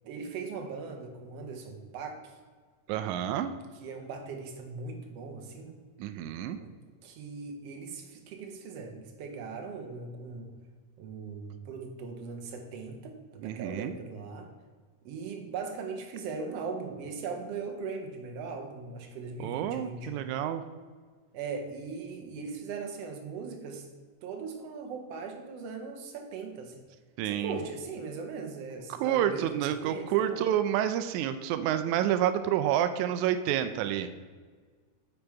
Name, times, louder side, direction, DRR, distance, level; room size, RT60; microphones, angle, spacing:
voice 1, 0.0-2.3 3.8-5.8 6.6-6.7 7.0-10.5 11.0-14.5 15.0-20.3 21.3-23.8 24.2-26.7 27.2-30.4, right 4 dB, 70° right, 4 dB, 1.5 m, -39 dB
voice 2, 2.9-3.5 6.0-6.6 13.4-13.9 19.4-20.6 27.2-27.6 28.9-34.3, right 10 dB, 85° right, 9 dB, 1.7 m, -29 dB
8.8 x 5.1 x 4.6 m, 1.5 s
omnidirectional pair, 3.9 m